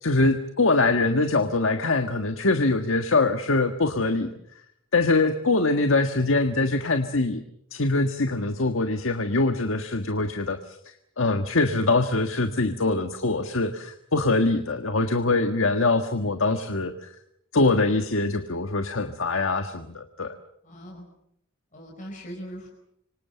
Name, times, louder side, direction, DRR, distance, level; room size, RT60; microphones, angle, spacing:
voice 1, 0.0-4.3 4.9-7.4 7.7-10.8 11.2-17.1 17.5-20.4, left 3 dB, 75° left, 7 dB, 1.6 m, -23 dB
voice 2, 20.6-21.0 21.7-22.7, equal, 40° left, 0 dB, 4.9 m, -41 dB
27.0 x 25.0 x 6.8 m, 0.74 s
head